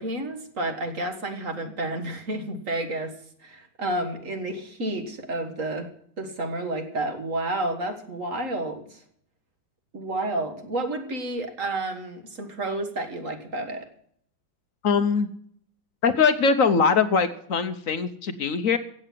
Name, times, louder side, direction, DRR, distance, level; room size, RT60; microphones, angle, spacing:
voice 1, 0.0-3.2 3.4-9.0 9.9-13.9, right 2 dB, 45° right, 6 dB, 1.9 m, -30 dB
voice 2, 14.8-15.3 16.0-18.8, left 5 dB, 55° left, 11 dB, 1.0 m, -22 dB
16.0 x 7.8 x 7.5 m, 0.66 s
omnidirectional pair, 2.1 m